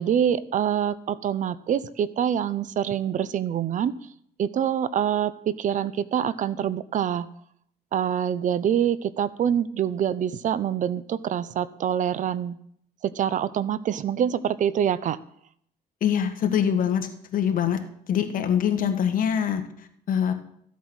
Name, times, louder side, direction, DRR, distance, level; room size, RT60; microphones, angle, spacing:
voice 1, 0.0-4.0 4.4-7.3 7.9-12.6 13.0-15.2, right 9 dB, 50° right, 17 dB, 0.6 m, -25 dB
voice 2, 16.0-17.8 18.1-20.3, left 8 dB, 55° left, 7 dB, 1.6 m, -24 dB
14.0 x 8.2 x 6.3 m, 0.70 s
cardioid pair, 110°, 17 cm